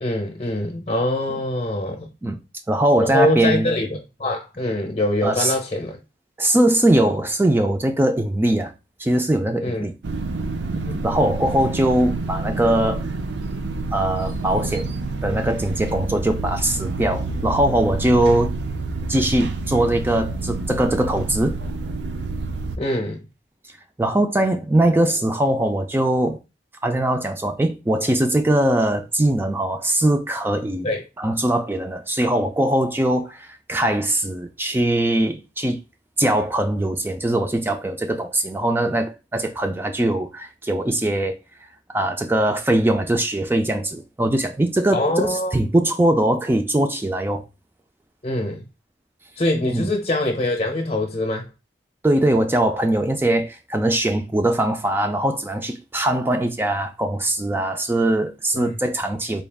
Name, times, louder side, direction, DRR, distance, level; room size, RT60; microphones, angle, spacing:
voice 1, 0.0-2.1 3.0-6.0 9.6-9.9 10.8-11.0 22.8-23.2 30.8-31.0 44.9-45.6 48.2-48.6 49.4-51.5 58.5-58.7, left 1 dB, 35° left, 0.7 m, -24 dB
voice 2, 2.7-3.7 5.2-5.5 6.4-8.7 9.0-9.9 10.7-13.0 13.9-18.5 19.1-21.6 24.0-26.4 26.8-30.9 31.2-35.8 36.2-41.4 41.9-47.4 49.7-49.9 52.0-59.4, right 1 dB, 10° right, 0.3 m, -21 dB
sound 1, 10.0-22.8, right 3 dB, 70° right, 0.5 m, -28 dB
4.1 x 2.3 x 3.4 m
head